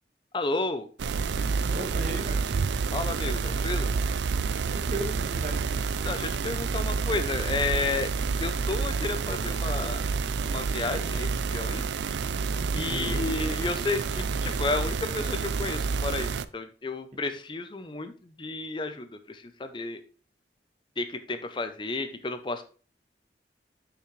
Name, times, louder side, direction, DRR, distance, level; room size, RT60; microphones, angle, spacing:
voice 1, 0.3-0.9 2.9-3.9 6.0-8.1 8.4-10.0 10.5-11.8 12.7-18.1 18.4-20.0 21.0-22.6, left 3 dB, 25° left, 9 dB, 0.5 m, -32 dB
sound 1, 1.0-16.5, right 5 dB, 85° right, 0.4 m, -29 dB
voice 2, 1.7-2.4 4.3-5.6 12.9-13.3, right 1 dB, 45° right, 4 dB, 1.4 m, -36 dB
10.0 x 5.8 x 3.2 m, 0.39 s
head